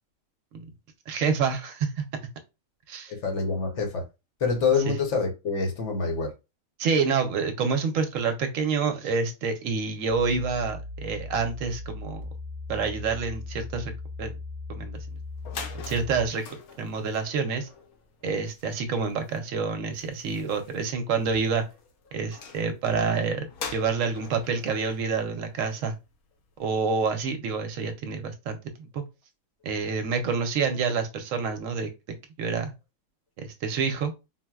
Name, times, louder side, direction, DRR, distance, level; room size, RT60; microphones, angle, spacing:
voice 1, 1.1-2.0 2.9-3.1 6.8-12.3 12.7-13.9 14.2-14.3 14.7-15.0 15.7-16.4 16.8-17.7 18.2-21.7 22.1-26.0 26.6-29.0 29.6-31.9 32.4-32.7 33.4-34.1, right 5 dB, 70° right, 0.9 m, -28 dB
voice 2, 3.1-4.0 4.4-6.3, left 4 dB, 60° left, 0.9 m, -26 dB
sound 1, 10.1-16.3, left 3 dB, 35° right, 0.3 m, -38 dB
sound 2, 15.0-15.1 15.3-26.1, left 5 dB, 85° left, 1.1 m, -44 dB
4.0 x 2.0 x 2.2 m
omnidirectional pair, 1.5 m